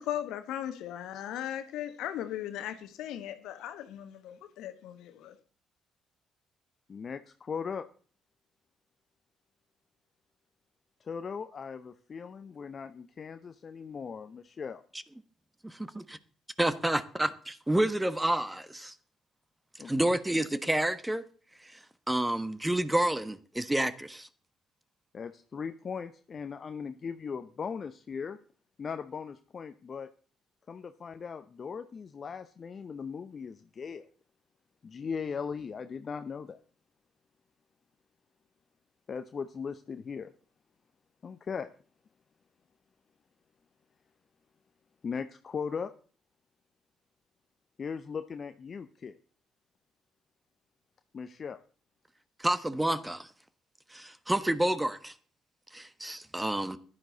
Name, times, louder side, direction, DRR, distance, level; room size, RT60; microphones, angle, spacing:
voice 1, 0.0-5.4, left 11 dB, 65° left, 1.3 m, -37 dB
voice 2, 6.9-7.9 11.0-14.8 19.8-19.9 25.1-28.4 28.8-30.1 30.7-34.1 34.8-36.6 39.1-40.3 41.2-41.7 45.0-45.9 47.8-49.1 51.1-51.6, left 6 dB, 45° left, 0.7 m, -38 dB
voice 3, 15.6-16.2 16.6-18.9 19.8-21.2 22.1-24.3 52.4-53.3 53.9-55.1 55.7-56.8, right 1 dB, 10° right, 1.2 m, -29 dB
15.0 x 10.5 x 4.0 m
hypercardioid pair, 45°, 0 cm